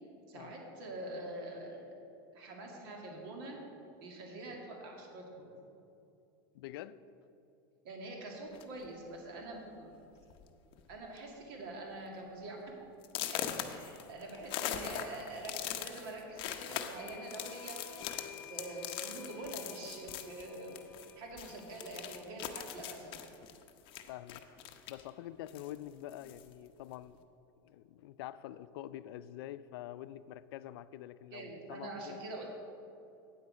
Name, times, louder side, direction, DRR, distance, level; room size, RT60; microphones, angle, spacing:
voice 1, 0.3-1.9 2.3-3.6 4.0-5.5 7.8-9.9 10.9-12.7 13.3-17.8 18.5-20.8 21.2-23.2 31.3-32.5, right 2 dB, 65° right, 0 dB, 2.0 m, -45 dB
voice 2, 6.5-7.0 13.8-14.0 24.1-24.4 24.9-27.3 27.6-32.2, left 13 dB, 75° left, 15 dB, 0.4 m, -46 dB
sound 1, 8.5-8.9 9.7-9.8 10.2-10.4 10.7-11.2 11.6-11.7 12.2-12.3 13.0-21.1 21.4-25.1 25.5-26.5, left 10 dB, 45° left, 0.7 m, -41 dB
sound 2, 16.9-22.2, left 7 dB, 25° left, 2.4 m, -53 dB
8.6 x 8.1 x 4.9 m, 2.7 s
supercardioid pair, 140°, 13 cm